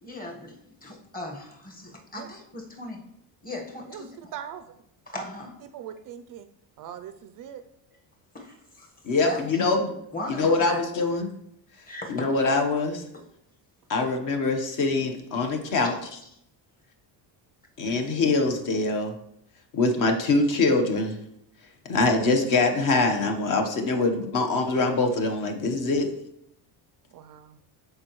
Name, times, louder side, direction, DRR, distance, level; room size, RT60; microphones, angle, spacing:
voice 1, 0.0-3.0 3.4-4.3 5.1-5.6 8.3-8.9 9.2-9.7 10.1-10.8 11.9-12.2, left 1 dB, 20° left, 1 dB, 1.3 m, -38 dB
voice 2, 4.3-4.8 5.7-6.5 6.8-7.6 13.9-14.2 27.1-27.6, right 9 dB, 50° right, 9 dB, 0.4 m, -41 dB
voice 3, 9.0-10.0 10.3-11.3 11.8-13.0 13.9-16.2 17.8-19.2 19.7-21.2 21.6-26.1, left 3 dB, 45° left, 4 dB, 1.1 m, -24 dB
13.5 x 4.8 x 3.1 m, 0.76 s
cardioid pair, 170°, 44 cm